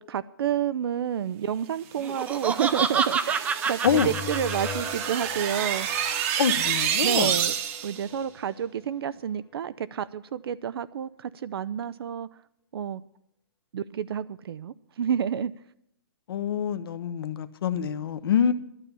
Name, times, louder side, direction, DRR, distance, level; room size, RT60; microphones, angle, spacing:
voice 1, 0.0-5.9 7.0-7.5 7.8-12.3 12.7-13.0 13.7-15.6, right 9 dB, 70° right, 0.5 m, -29 dB
Laughter, 2.0-5.3, right 6 dB, 10° right, 0.5 m, -28 dB
sound 1, 2.1-8.0, right 9 dB, 35° right, 1.0 m, -29 dB
sound 2, 3.9-9.1, left 8 dB, 15° left, 1.2 m, -41 dB
voice 2, 6.4-7.3 16.3-18.5, left 8 dB, 65° left, 0.9 m, -25 dB
12.0 x 6.8 x 9.8 m
hypercardioid pair, 150°, 13 cm